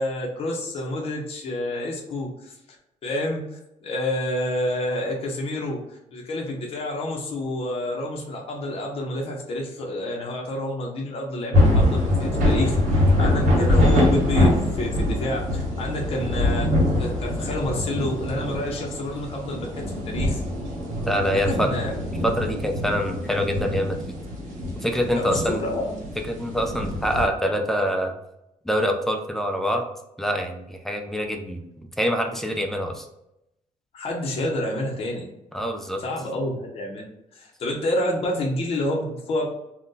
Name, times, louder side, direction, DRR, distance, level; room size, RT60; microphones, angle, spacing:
voice 1, 0.0-2.5 3.0-16.7 17.0-20.4 21.5-21.9 25.1-26.0 33.9-35.3 36.0-37.0 37.3-39.5, left 1 dB, 45° left, -1 dB, 0.6 m, -29 dB
sound 1, 11.5-27.3, left 1 dB, 65° right, 1.1 m, -23 dB
voice 2, 21.0-21.7 22.2-24.1 24.8-25.6 26.3-28.1 28.6-29.9 30.2-31.6 32.0-33.1 35.5-36.0, equal, 5° left, 4 dB, 0.3 m, -25 dB
2.6 x 2.1 x 3.7 m, 0.85 s
cardioid pair, 165°, 14 cm